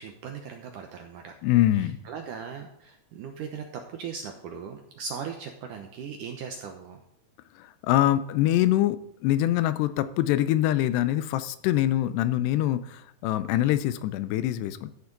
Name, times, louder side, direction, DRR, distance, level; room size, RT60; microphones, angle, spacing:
voice 1, 0.0-1.3 2.1-7.0, right 6 dB, 75° right, 4 dB, 1.9 m, -38 dB
voice 2, 1.4-2.0 7.6-14.9, left 13 dB, 85° left, 13 dB, 2.8 m, -24 dB
14.0 x 9.6 x 4.0 m, 0.73 s
omnidirectional pair, 4.8 m